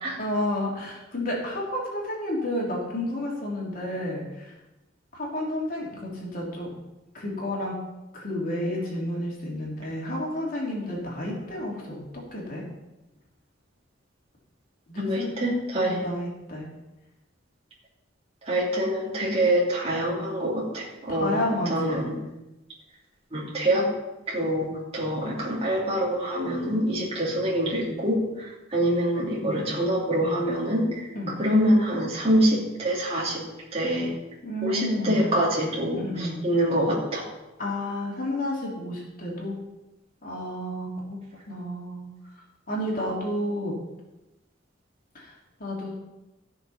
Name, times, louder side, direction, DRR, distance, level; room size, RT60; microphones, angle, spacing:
voice 1, 0.2-4.5 5.1-6.7 7.1-7.7 8.1-12.6 14.9-15.3 15.8-16.7 21.1-22.0 29.3-29.7 31.1-31.3 34.4-35.3 36.0-36.4 37.6-39.6 40.2-41.2 41.5-42.1 42.7-43.7 45.1-45.9, left 1 dB, 50° left, -3 dB, 3.3 m, -31 dB
voice 2, 15.0-16.0 18.4-21.4 21.7-22.1 23.3-23.9 24.3-24.7 24.9-31.1 31.4-33.4 33.7-34.1 34.6-37.3, equal, 30° right, -6 dB, 3.0 m, -25 dB
15.0 x 6.5 x 5.8 m, 1.0 s
head